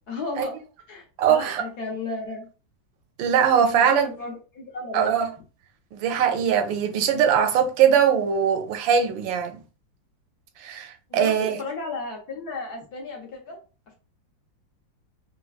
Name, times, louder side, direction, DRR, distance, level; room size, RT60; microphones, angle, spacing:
voice 1, 0.1-0.6 0.9-2.5 3.6-5.1 11.1-13.6, left 3 dB, 60° left, 1.4 m, -33 dB
voice 2, 1.2-1.6 3.2-4.1 4.9-5.3 5.9-9.6 10.6-11.6, right 8 dB, 85° right, 1.4 m, -21 dB
4.5 x 2.2 x 2.3 m
omnidirectional pair, 2.1 m